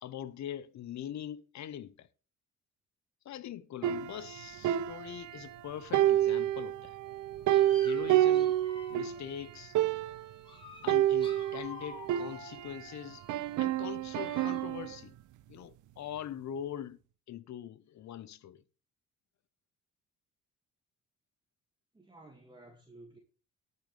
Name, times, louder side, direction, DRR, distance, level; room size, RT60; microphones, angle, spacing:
voice 1, 0.0-2.1 3.2-7.0 7.8-8.5 8.9-9.8 10.8-13.3 13.6-15.2 15.5-17.0 17.3-18.6, left 10 dB, 65° left, 1.0 m, -42 dB
sound 1, 3.8-5.6 5.9-9.2 9.5-9.6 9.7-10.4 10.9-12.9 13.3-15.0, right 13 dB, 75° right, 0.6 m, -29 dB
sound 2, 5.0-5.1 6.1-6.2 7.1-7.2 7.5-9.2 10.1-10.2 10.4-13.2 14.1-14.7, left 3 dB, 15° left, 4.4 m, -50 dB
voice 2, 21.9-23.2, right 2 dB, 15° right, 2.2 m, -54 dB
18.0 x 6.8 x 3.4 m
cardioid pair, 90°, 30 cm